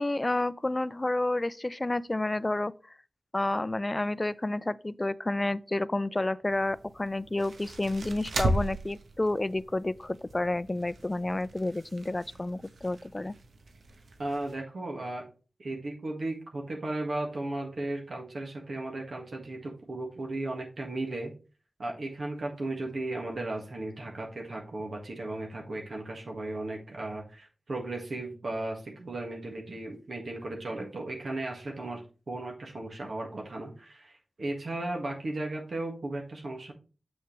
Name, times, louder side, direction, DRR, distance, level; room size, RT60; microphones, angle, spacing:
voice 1, 0.0-2.7 3.3-13.3, left 2 dB, 30° left, 0.4 m, -30 dB
sound 1, 6.5-14.5, right 1 dB, 90° right, 1.1 m, -37 dB
voice 2, 14.2-15.3 15.6-21.3 21.8-32.0 32.3-36.7, right 2 dB, 70° right, 1.9 m, -35 dB
7.1 x 6.6 x 3.3 m
wide cardioid pair, 60°, 0 cm